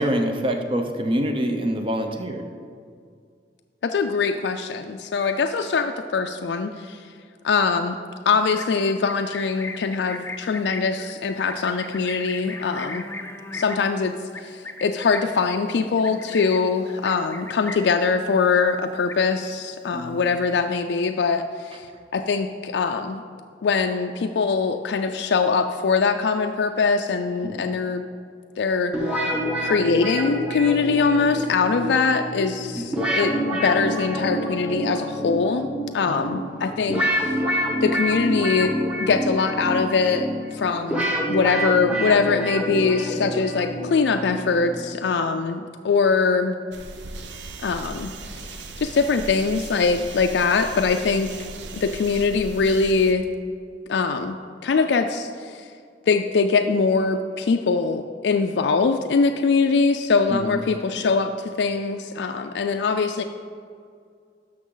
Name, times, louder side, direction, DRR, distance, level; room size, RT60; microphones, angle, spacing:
voice 1, 0.0-2.4 19.9-20.2 27.4-27.7 32.8-33.0 36.1-36.2 60.3-60.6, equal, 30° right, 5 dB, 0.7 m, -26 dB
voice 2, 3.8-7.0 7.4-8.0 8.3-13.0 13.5-23.2 23.6-28.0 28.6-29.2 29.6-35.7 35.9-37.4 37.8-38.7 39.0-46.6 47.6-48.4 48.8-51.3 51.7-53.3 53.9-55.7 56.1-63.2, left 4 dB, 70° left, 5 dB, 0.4 m, -22 dB
Livestock farm animals working animals, 8.4-18.0 18.4-18.7 18.9-19.6 19.9-20.6, left 3 dB, 15° left, 0.5 m, -38 dB
sound 1, 28.9-44.9, equal, 5° right, 1.2 m, -27 dB
sound 2, 46.7-53.1, right 3 dB, 85° right, 0.6 m, -38 dB
12.5 x 5.9 x 3.9 m, 2.2 s
head